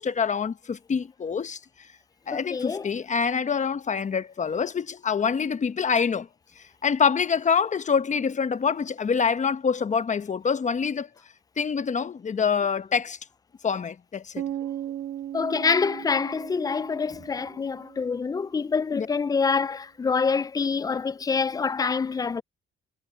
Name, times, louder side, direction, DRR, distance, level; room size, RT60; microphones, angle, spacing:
voice 1, 0.0-1.6 2.3-6.3 6.6-11.1 11.6-13.2 13.6-14.4 18.9-19.1, left 6 dB, 35° left, 1.2 m, -26 dB
voice 2, 2.3-2.9 15.3-22.4, left 5 dB, 20° left, 0.4 m, -26 dB
sound 1, 14.4-18.3, right 11 dB, 70° right, 2.2 m, -37 dB
cardioid pair, 90°, 20 cm